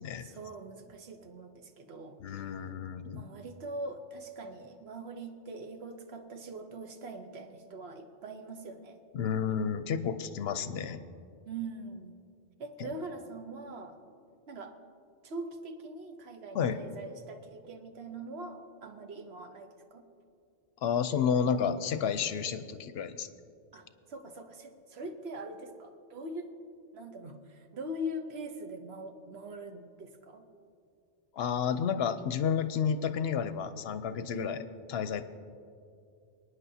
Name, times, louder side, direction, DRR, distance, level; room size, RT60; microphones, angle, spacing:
voice 1, 0.2-2.5 3.1-9.0 11.5-12.1 12.6-14.0 14.5-14.7 15.2-20.1 23.7-26.5 26.9-30.5 34.3-34.6, right 1 dB, 70° right, 6 dB, 1.1 m, -42 dB
voice 2, 2.2-3.3 9.1-11.0 12.8-12.9 16.5-16.8 20.8-23.3 31.3-34.6 34.9-35.2, left 7 dB, 70° left, 11 dB, 0.8 m, -31 dB
24.5 x 9.5 x 2.7 m, 2.4 s
omnidirectional pair, 1.1 m